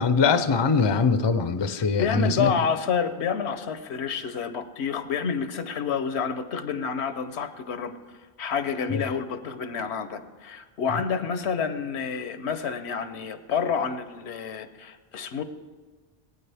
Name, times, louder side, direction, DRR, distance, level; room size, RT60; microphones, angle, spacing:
voice 1, 0.0-2.5 8.9-9.0, left 5 dB, 35° left, 10 dB, 0.4 m, -22 dB
voice 2, 1.7-7.9 8.4-15.4, left 6 dB, 90° left, 11 dB, 1.0 m, -29 dB
20.0 x 9.3 x 3.4 m, 1.4 s
omnidirectional pair, 1.1 m